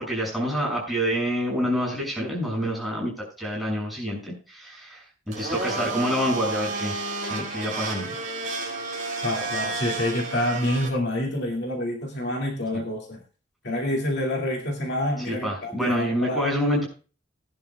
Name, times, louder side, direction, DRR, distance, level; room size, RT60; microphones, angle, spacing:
voice 1, 0.0-7.0 7.3-8.2 12.7-12.8 15.3-16.8, equal, ahead, -3 dB, 6.4 m, -27 dB
Domestic sounds home sounds, 5.3-10.9, right 3 dB, 40° right, 4.8 m, -31 dB
voice 2, 9.2-13.2 13.6-16.5, left 1 dB, 55° left, 0 dB, 2.3 m, -27 dB
19.0 x 11.0 x 2.3 m, 0.36 s
head